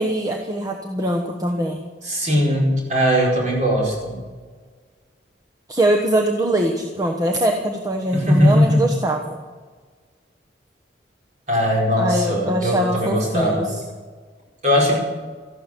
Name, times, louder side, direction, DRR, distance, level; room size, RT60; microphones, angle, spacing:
voice 1, 0.0-1.8 5.7-9.4 12.0-13.7, right 1 dB, 20° right, 1 dB, 1.1 m, -22 dB
voice 2, 2.0-4.2 8.1-8.8 11.5-13.7 14.6-15.0, equal, 40° right, -2 dB, 4.7 m, -19 dB
14.0 x 12.0 x 7.5 m, 1.5 s
head